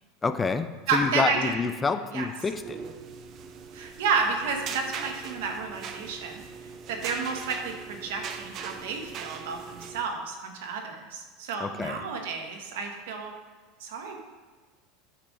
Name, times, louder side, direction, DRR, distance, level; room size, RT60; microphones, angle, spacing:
voice 1, 0.2-2.8 11.6-12.0, left 4 dB, 15° left, 10 dB, 0.3 m, -28 dB
voice 2, 0.9-1.6 2.1-2.3 3.7-6.3 6.9-13.3 13.8-14.2, right 5 dB, 85° right, 3 dB, 1.1 m, -31 dB
sound 1, 2.5-10.0, right 6 dB, 40° right, 0.5 m, -40 dB
8.6 x 3.3 x 5.1 m, 1.4 s
supercardioid pair, 140°, 0 cm